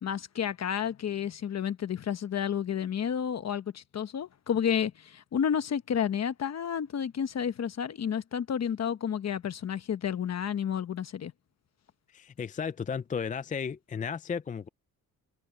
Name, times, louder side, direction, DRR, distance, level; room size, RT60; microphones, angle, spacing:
voice 1, 0.0-11.3, left 8 dB, 45° left, 1.1 m, -31 dB
voice 2, 12.1-14.7, left 6 dB, 25° left, 0.3 m, -34 dB
wide cardioid pair, 150°, 35 cm